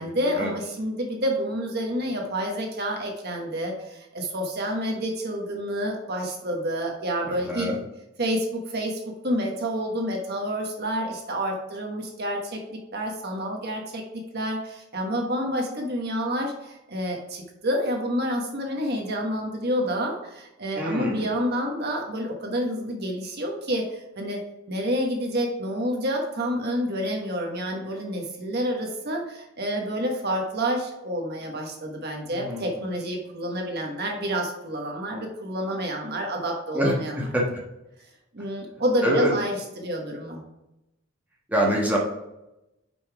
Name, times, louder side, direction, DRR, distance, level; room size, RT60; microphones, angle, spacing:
voice 1, 0.0-7.7 8.2-24.4 24.7-37.2 38.3-40.4, equal, 50° right, 1 dB, 1.3 m, -29 dB
voice 2, 7.2-7.8 20.7-21.3 32.3-32.7 36.7-37.4 39.0-39.3 41.5-42.0, equal, 10° right, -4 dB, 1.3 m, -25 dB
5.5 x 5.4 x 4.7 m, 0.91 s
head